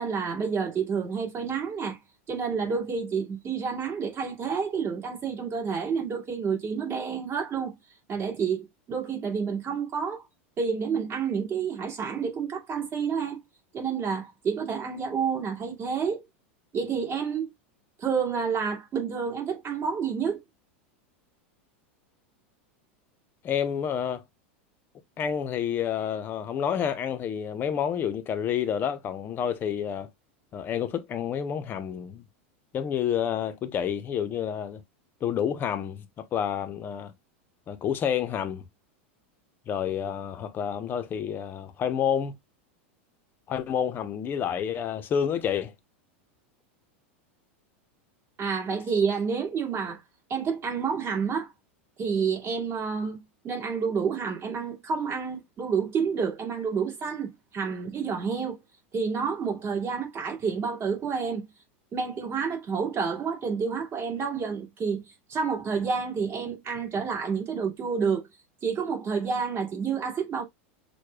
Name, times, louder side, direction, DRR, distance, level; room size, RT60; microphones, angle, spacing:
voice 1, 0.0-2.0 2.3-7.8 8.1-10.2 10.6-13.4 13.7-16.2 16.7-17.5 18.0-20.4 48.4-50.0 50.3-51.5 52.0-58.6 58.9-61.5 61.9-65.0 65.3-68.3 68.6-70.4, right 6 dB, 35° right, 2.0 m, -29 dB
voice 2, 23.4-24.2 25.2-30.1 30.5-32.2 32.7-34.8 35.2-37.1 37.7-38.6 39.7-42.4 43.5-45.7, left 8 dB, 30° left, 0.7 m, -29 dB
6.5 x 2.2 x 2.2 m
supercardioid pair, 120°, 7 cm